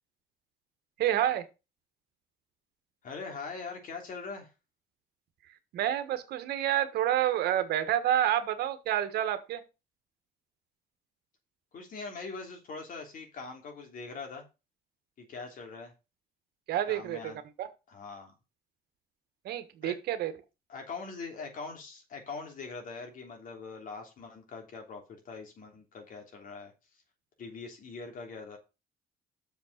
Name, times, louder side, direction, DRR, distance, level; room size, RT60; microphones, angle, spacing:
voice 1, 1.0-1.5 5.7-9.6 16.7-17.3 17.6-17.7 19.4-20.3, right 11 dB, 75° right, 10 dB, 1.5 m, -28 dB
voice 2, 3.0-4.5 11.7-14.4 15.2-15.9 16.9-17.4 17.9-18.3 19.8-20.0 20.7-26.7 27.4-28.6, left 4 dB, 55° left, 3 dB, 3.2 m, -42 dB
7.0 x 5.2 x 6.7 m, 0.28 s
cardioid pair, 110°, 17 cm